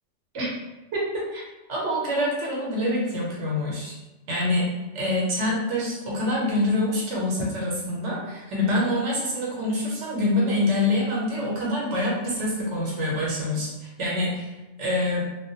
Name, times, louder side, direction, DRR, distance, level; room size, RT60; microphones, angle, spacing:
voice 1, 0.9-1.4 1.7-3.9 4.3-4.7 4.9-14.5 14.8-15.2, left 1 dB, 75° right, -4 dB, 1.0 m, -26 dB
2.2 x 2.1 x 2.6 m, 1.0 s
omnidirectional pair, 1.2 m